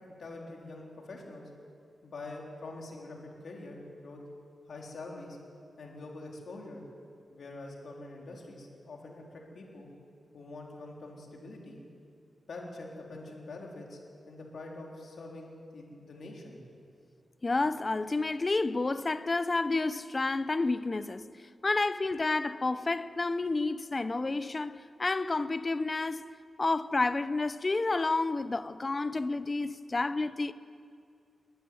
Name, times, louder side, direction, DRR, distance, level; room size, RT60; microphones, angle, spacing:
voice 1, 0.2-1.5 2.0-3.2 3.4-4.2 4.7-5.4 5.8-6.8 7.3-9.9 10.3-11.8 12.5-14.0 14.3-16.6, left 2 dB, 65° left, 3.8 m, -45 dB
voice 2, 17.4-21.3 21.6-26.2 26.6-30.5, left 3 dB, 30° left, 0.6 m, -30 dB
21.0 x 13.0 x 9.7 m
wide cardioid pair, 130°, 0 cm